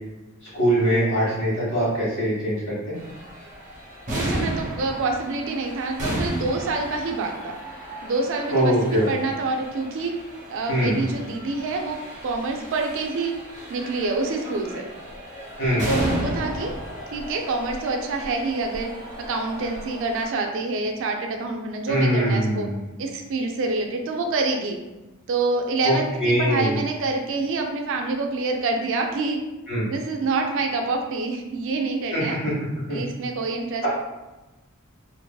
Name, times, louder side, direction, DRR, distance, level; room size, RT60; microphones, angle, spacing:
voice 1, 0.5-3.0 8.5-9.1 10.7-11.0 15.6-15.9 21.9-22.8 25.8-25.9 26.2-26.8 29.7-29.8 32.1-32.5 32.9-33.0, equal, 55° left, -8 dB, 1.4 m, -22 dB
sound 1, 2.9-20.3, equal, 35° right, 0.8 m, -34 dB
voice 2, 4.1-7.6 8.0-10.1 10.5-13.3 13.7-14.9 15.9-16.7 17.1-18.9 19.3-22.7 23.0-24.8 25.3-29.4 29.8-32.4 32.9-33.9, right 3 dB, 60° right, 3 dB, 0.4 m, -27 dB
2.6 x 2.5 x 2.2 m, 1.1 s
head